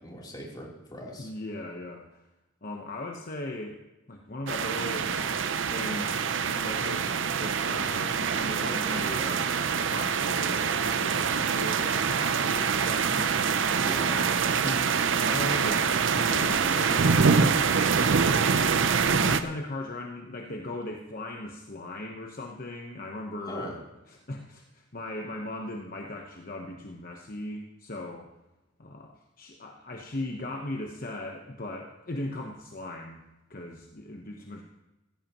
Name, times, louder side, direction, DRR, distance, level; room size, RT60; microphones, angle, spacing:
voice 1, 0.0-1.3 5.0-5.2 13.8-14.1 23.4-23.7, equal, 20° left, -3 dB, 3.4 m, -40 dB
voice 2, 1.2-2.2 2.6-3.8 4.1-9.5 9.8-14.3 14.6-17.8 18.2-23.8 24.1-28.3 28.8-33.2 33.5-34.6, left 1 dB, 45° left, 1 dB, 1.1 m, -38 dB
sound 1, 4.5-19.4, right 6 dB, 65° right, 0.6 m, -25 dB
16.5 x 14.5 x 3.0 m, 1.0 s
head